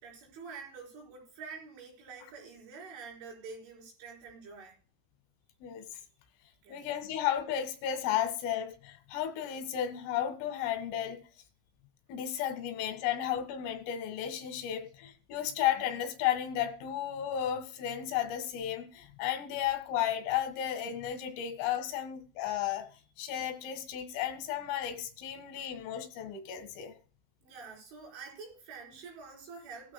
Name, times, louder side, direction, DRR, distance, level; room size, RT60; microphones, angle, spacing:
voice 1, 0.0-4.8 6.6-6.8 27.4-29.9, right 5 dB, 75° right, 6.8 m, -47 dB
voice 2, 6.7-11.2 12.1-22.9 23.2-26.9, left 10 dB, 90° left, 4.2 m, -33 dB
17.5 x 12.5 x 2.2 m
omnidirectional pair, 5.6 m